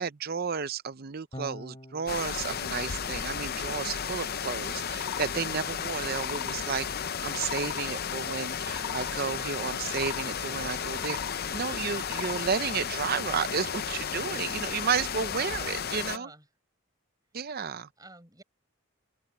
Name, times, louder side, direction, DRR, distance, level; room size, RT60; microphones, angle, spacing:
voice 1, 0.0-6.8 7.2-11.2 11.5-16.3 17.3-17.9, right 6 dB, 45° right, 0.6 m, -32 dB
Electric guitar / Bass guitar, 1.3-7.7, equal, 25° left, 5.7 m, -51 dB
sound 1, 2.1-16.2, left 7 dB, 45° left, 0.7 m, -33 dB
sound 2, 4.9-5.3 5.9-6.6 7.2-7.9 8.5-9.2 9.8-10.2 10.8-11.4 11.9-12.4, left 8 dB, 65° left, 1.4 m, -39 dB
voice 2, 8.6-9.6 14.4-14.9 16.0-16.5 18.0-18.4, right 2 dB, 15° right, 4.8 m, -50 dB
head